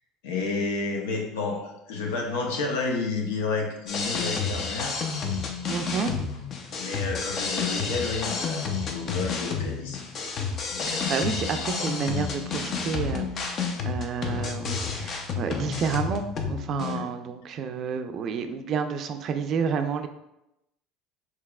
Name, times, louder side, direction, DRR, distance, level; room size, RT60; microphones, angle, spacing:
voice 1, 0.2-5.0 6.8-10.0 10.7-11.9 16.8-17.0, left 4 dB, 90° left, 1 dB, 0.7 m, -31 dB
sound 1, 3.9-17.0, left 5 dB, 45° left, 0.5 m, -30 dB
voice 2, 5.7-6.1 10.9-20.1, right 6 dB, 50° right, 7 dB, 0.4 m, -30 dB
4.7 x 2.8 x 2.3 m, 0.88 s
supercardioid pair, 105°, 0 cm